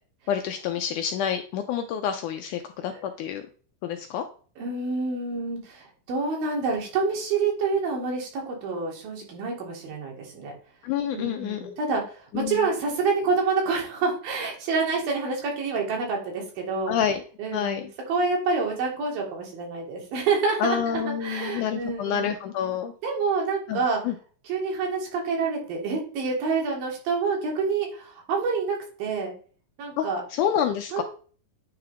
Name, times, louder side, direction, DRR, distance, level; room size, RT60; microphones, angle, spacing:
voice 1, 0.3-3.4 3.8-4.2 10.8-11.8 12.3-12.6 16.9-17.2 17.5-17.9 20.6-22.9 23.7-24.2 30.0-31.0, left 9 dB, 80° left, 5 dB, 1.8 m, -28 dB
voice 2, 4.6-10.5 11.1-17.0 17.4-22.3 23.0-24.0 24.5-29.3 29.8-30.2 30.9-31.0, right 4 dB, 85° right, 0 dB, 3.6 m, -27 dB
9.5 x 3.5 x 3.5 m, 0.41 s
omnidirectional pair, 4.0 m